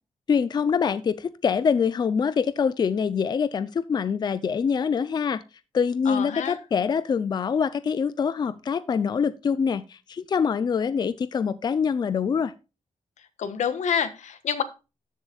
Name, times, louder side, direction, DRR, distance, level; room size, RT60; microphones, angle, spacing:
voice 1, 0.3-5.4 5.7-12.5, left 6 dB, 35° left, 15 dB, 0.5 m, -25 dB
voice 2, 6.0-6.6 13.4-14.6, left 8 dB, 90° left, 11 dB, 1.3 m, -27 dB
13.0 x 7.3 x 2.4 m, 0.29 s
wide cardioid pair, 180°, 12 cm